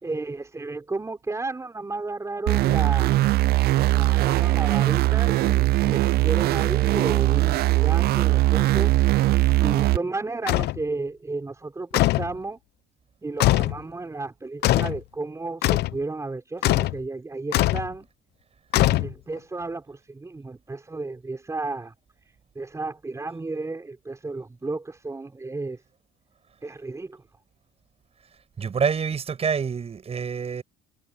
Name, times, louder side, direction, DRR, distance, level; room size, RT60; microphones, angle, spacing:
voice 1, 0.0-3.2 3.9-8.9 9.6-12.6 13.2-18.1 18.8-21.9 22.5-25.8 26.6-27.2, right 3 dB, 15° right, 4.4 m, -33 dB
sound 1, 2.5-10.0, right 18 dB, 65° right, 0.5 m, -20 dB
sound 2, 10.5-10.8 11.9-12.3 13.4-13.8 14.6-15.0 15.6-16.0 16.6-17.0 17.5-17.9 18.7-19.4, left 16 dB, 75° left, 0.8 m, -21 dB
voice 2, 28.6-30.6, right 6 dB, 35° right, 7.6 m, -26 dB
cardioid pair, 110°, 17 cm